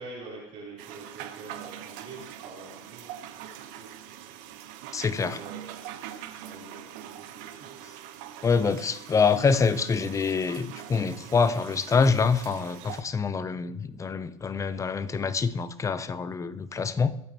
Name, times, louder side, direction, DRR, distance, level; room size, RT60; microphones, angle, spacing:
voice 1, 0.0-3.9 4.4-5.0 5.3-7.9 9.1-9.2, right 3 dB, 35° right, 3.9 m, -46 dB
sound 1, 0.8-13.0, right 11 dB, 60° right, 1.2 m, -43 dB
voice 2, 4.9-5.4 8.4-17.1, left 5 dB, 20° left, 0.7 m, -25 dB
21.5 x 8.9 x 3.1 m
supercardioid pair, 110°, 16 cm